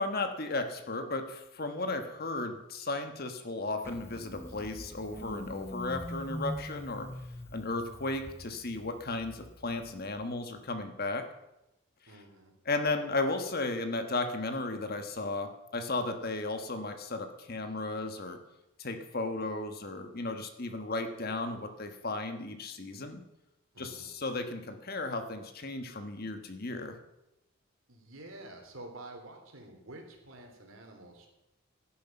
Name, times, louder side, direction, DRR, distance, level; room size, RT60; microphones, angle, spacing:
voice 1, 0.0-7.1 7.5-11.2 12.7-18.4 18.8-23.2 23.8-27.0, left 2 dB, 45° left, 7 dB, 1.4 m, -35 dB
Engine starting, 3.8-10.3, left 1 dB, 10° left, 0.5 m, -43 dB
voice 2, 12.1-12.5 23.7-24.2 27.9-31.3, right 2 dB, 70° right, 3 dB, 3.2 m, -49 dB
16.5 x 10.0 x 5.5 m, 0.91 s
head